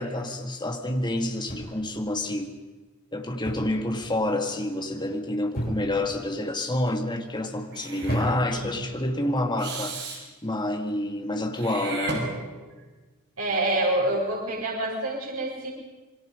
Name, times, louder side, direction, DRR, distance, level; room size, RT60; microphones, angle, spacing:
voice 1, 0.0-2.5 3.1-12.4, left 1 dB, 20° left, 2.3 m, -28 dB
sound 1, 1.5-2.0 3.4-3.8 4.1-4.5 5.5-6.1 6.8-7.2 8.0-8.7 9.6-9.9, equal, 45° left, 7.3 m, -32 dB
Meow / Hiss, 7.7-8.3 9.6-10.2 11.5-12.8, right 3 dB, 55° right, 5.5 m, -34 dB
voice 2, 8.3-8.7 13.4-15.7, right 1 dB, 90° right, 7.1 m, -27 dB
27.5 x 23.0 x 5.3 m
head